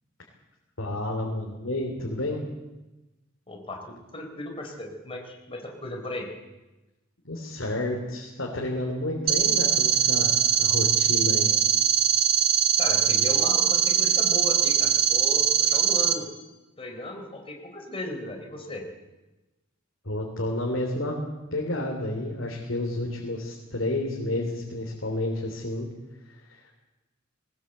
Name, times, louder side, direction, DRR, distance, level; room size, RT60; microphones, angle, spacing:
voice 1, 0.8-2.4 7.2-11.5 20.0-21.2 21.5-25.9 26.5-26.6, left 1 dB, 70° left, -1 dB, 3.3 m, -30 dB
voice 2, 3.5-6.3 12.8-16.3 16.8-18.8, left 1 dB, 30° left, 2 dB, 3.9 m, -36 dB
sound 1, 9.3-16.1, right 8 dB, 50° right, 1.5 m, -22 dB
19.5 x 19.5 x 8.0 m, 1.1 s
head